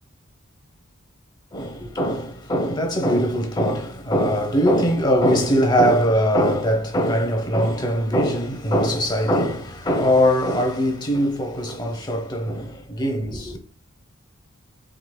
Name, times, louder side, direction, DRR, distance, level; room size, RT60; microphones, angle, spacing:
voice 1, 1.5-13.6, equal, 20° left, 0.8 m, -21 dB
5.0 x 3.8 x 2.2 m
head